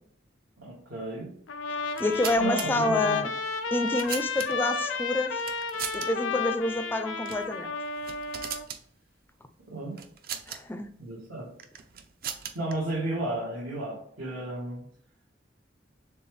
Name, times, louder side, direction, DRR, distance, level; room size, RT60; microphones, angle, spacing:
voice 1, 0.6-1.3 2.4-3.2 9.7-10.0 11.0-11.5 12.5-14.8, right 2 dB, 80° right, -6 dB, 1.3 m, -33 dB
Trumpet, 1.5-8.6, left 5 dB, 90° left, 0.5 m, -32 dB
sound 1, 1.9-2.7 3.5-4.8 5.4-6.1 6.4-6.5 7.2-7.5 7.8-8.8 10.0-10.6 11.6-12.7, right 8 dB, 50° right, 0.5 m, -38 dB
voice 2, 2.0-3.3 3.7-5.4 5.9-7.7 10.5-10.9, left 2 dB, 10° left, 8 dB, 0.4 m, -28 dB
6.8 x 2.3 x 3.2 m, 0.63 s
head